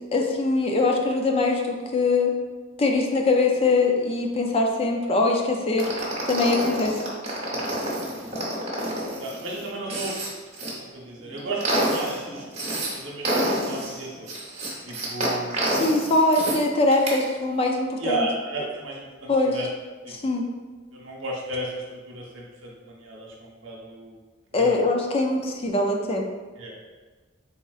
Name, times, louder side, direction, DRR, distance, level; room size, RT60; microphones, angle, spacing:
voice 1, 0.1-2.3 2.8-5.9 6.3-7.0 15.7-18.3 19.3-19.5 20.1-20.4 24.5-26.2, left 3 dB, 30° left, 1 dB, 0.4 m, -22 dB
sound 1, 5.8-10.7 11.2-12.9 13.2-16.6 16.9-17.2, right 1 dB, 35° right, 0.9 m, -28 dB
voice 2, 7.5-8.3 9.2-10.1 10.8-12.5 12.7-14.3 14.8-15.7 18.0-19.7 20.0-20.1 20.9-24.2 24.5-24.8 26.6-26.8, right 2 dB, 70° right, -3 dB, 0.9 m, -34 dB
4.2 x 3.7 x 2.4 m, 1.4 s
head